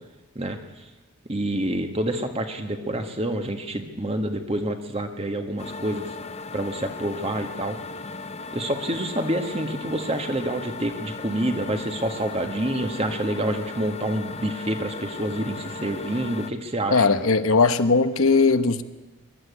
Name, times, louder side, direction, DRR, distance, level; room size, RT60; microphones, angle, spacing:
voice 1, 1.3-6.1 6.5-7.8 8.5-17.1, right 1 dB, 30° right, 6 dB, 1.6 m, -27 dB
sound 1, 5.6-16.5, left 3 dB, 30° left, 0.7 m, -37 dB
voice 2, 16.9-18.8, left 4 dB, 70° left, 10 dB, 1.0 m, -19 dB
22.0 x 12.0 x 9.6 m, 1.2 s
head